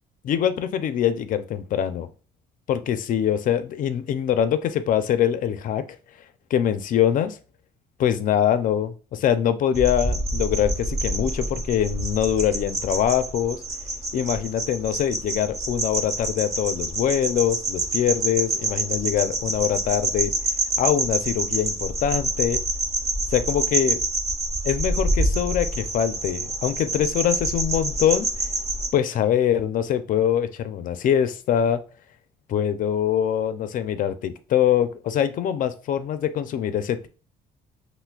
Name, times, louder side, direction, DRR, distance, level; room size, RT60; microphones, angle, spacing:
voice 1, 0.2-2.1 2.7-5.8 6.5-7.4 8.0-13.6 14.1-20.3 20.8-22.6 23.3-24.0 24.6-28.3 28.9-31.8 32.5-37.1, left 9 dB, 55° left, 11 dB, 0.4 m, -23 dB
sound 1, 9.7-28.9, right 2 dB, 40° right, 1.0 m, -27 dB
5.7 x 2.0 x 2.3 m, 0.36 s
cardioid pair, 110°, 17 cm